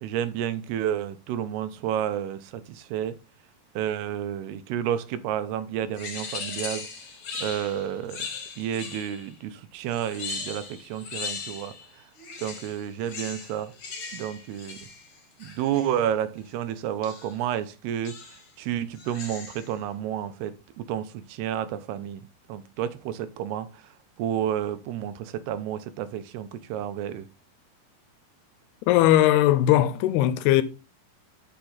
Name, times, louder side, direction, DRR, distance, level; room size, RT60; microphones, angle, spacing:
voice 1, 0.0-3.1 3.8-6.9 7.4-8.3 8.6-11.8 12.4-13.7 14.1-14.8 15.4-18.2 18.6-22.2 22.5-23.8 24.2-27.3, right 10 dB, 80° right, 2.7 m, -30 dB
sound 1, 6.0-9.3 9.9-11.9 12.2-16.0 17.0-17.4 18.0-18.5 18.9-19.7, left 5 dB, 45° left, 2.0 m, -38 dB
voice 2, 28.9-30.6, left 13 dB, 85° left, 2.7 m, -19 dB
7.0 x 6.1 x 3.9 m
omnidirectional pair, 4.6 m